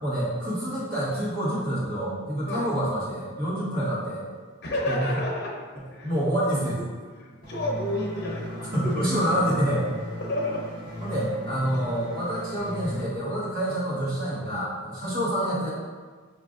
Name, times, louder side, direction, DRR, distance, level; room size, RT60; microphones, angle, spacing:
voice 1, 0.0-4.2 4.8-5.1 6.0-6.8 8.7-9.9 11.0-15.7, equal, 45° right, -7 dB, 1.1 m, -27 dB
voice 2, 4.6-5.5 5.9-6.1 7.2-9.1 10.2-10.7 15.0-15.1, left 1 dB, 50° left, -3 dB, 0.7 m, -30 dB
sound 1, 7.4-13.0, left 1 dB, 25° right, 0.7 m, -36 dB
4.9 x 2.5 x 2.4 m, 1.5 s
head